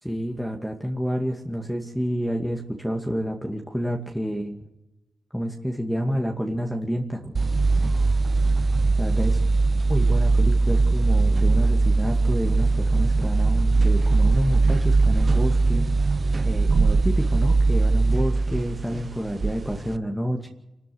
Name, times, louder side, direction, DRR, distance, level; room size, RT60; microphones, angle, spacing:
voice 1, 0.0-4.6 5.3-7.3 9.0-9.3 9.9-15.8 16.4-20.5, equal, ahead, 1 dB, 2.3 m, -29 dB
sound 1, 7.3-20.0, right 3 dB, 40° right, 0.8 m, -20 dB
27.5 x 13.0 x 8.0 m, 0.92 s
wide cardioid pair, 100°, 0 cm